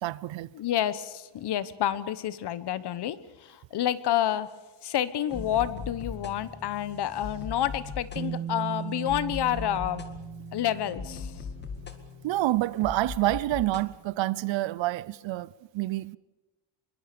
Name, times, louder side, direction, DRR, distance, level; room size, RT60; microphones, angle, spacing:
voice 1, 0.0-0.5 12.2-16.2, right 16 dB, 65° right, 0.7 m, -28 dB
voice 2, 0.5-4.5 4.8-10.0 10.5-11.3, left 11 dB, 55° left, 1.2 m, -29 dB
sound 1, 5.3-13.9, left 5 dB, 20° left, 1.9 m, -40 dB
Bass guitar, 8.2-12.1 13.2-13.3, right 9 dB, 35° right, 1.6 m, -38 dB
25.5 x 22.5 x 6.9 m
cardioid pair, 170°, 49 cm